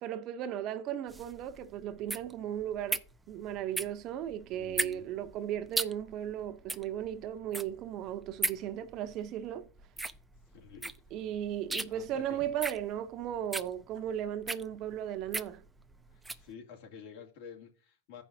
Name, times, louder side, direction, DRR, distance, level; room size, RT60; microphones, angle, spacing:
voice 1, 0.0-3.0 3.3-9.7 11.1-15.6, right 10 dB, 45° right, 0.8 m, -36 dB
sound 1, 1.1-16.5, right 2 dB, 10° right, 0.5 m, -38 dB
voice 2, 4.5-5.1 10.5-10.9 11.9-12.5 16.1-18.2, left 7 dB, 65° left, 2.7 m, -50 dB
15.0 x 5.4 x 2.8 m
supercardioid pair, 125°, 0 cm